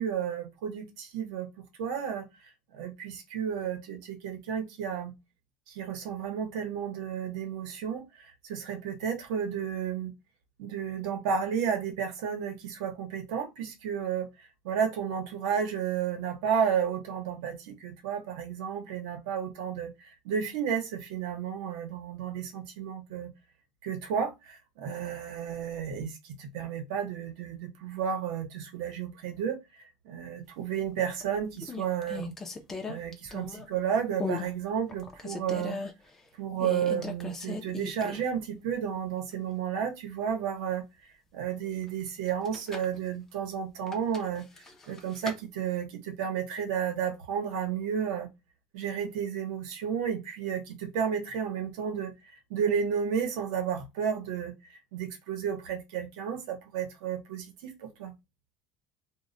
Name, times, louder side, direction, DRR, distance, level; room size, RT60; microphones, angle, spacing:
voice 1, 0.0-1.5 1.8-2.3 2.7-5.1 5.7-10.1 10.6-14.3 14.6-23.3 23.8-26.1 26.4-29.6 30.0-32.3 32.9-35.8 36.4-40.8 41.3-44.4 44.9-48.3 48.7-52.1 52.5-54.5 54.9-58.1, right 8 dB, 75° right, 0.7 m, -32 dB
sound 1, 30.8-31.2 31.6-33.8 34.2-34.5 34.9-35.9 36.6-38.4 38.7-38.8 42.3-43.0 43.9-45.4, left 4 dB, 15° left, 0.4 m, -37 dB
2.1 x 2.1 x 3.7 m
cardioid pair, 170°, 3 cm